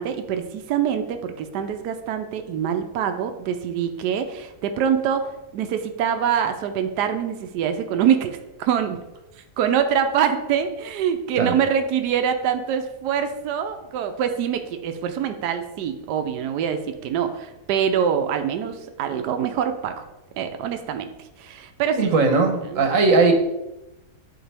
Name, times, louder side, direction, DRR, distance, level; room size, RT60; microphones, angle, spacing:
voice 1, 0.0-9.0 9.6-20.0 20.4-21.1 21.4-22.1 22.6-22.8, right 8 dB, 85° right, 7 dB, 1.2 m, -24 dB
voice 2, 21.9-23.3, right 3 dB, 55° right, 5 dB, 1.3 m, -18 dB
10.0 x 4.0 x 3.4 m, 0.96 s
omnidirectional pair, 1.7 m